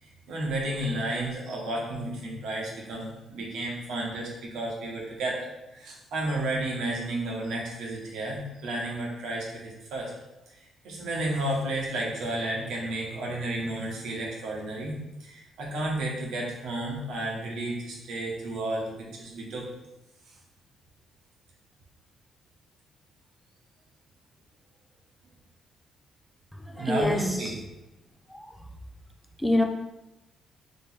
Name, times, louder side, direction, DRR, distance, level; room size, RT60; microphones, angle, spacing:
voice 1, 0.0-10.1 10.8-19.7 26.7-27.5, right 1 dB, 80° right, -3 dB, 1.2 m, -32 dB
voice 2, 26.5-27.6 28.3-28.5 29.4-29.6, left 1 dB, 5° left, 3 dB, 0.5 m, -27 dB
3.3 x 3.1 x 4.3 m, 0.99 s
cardioid pair, 90°, 0 cm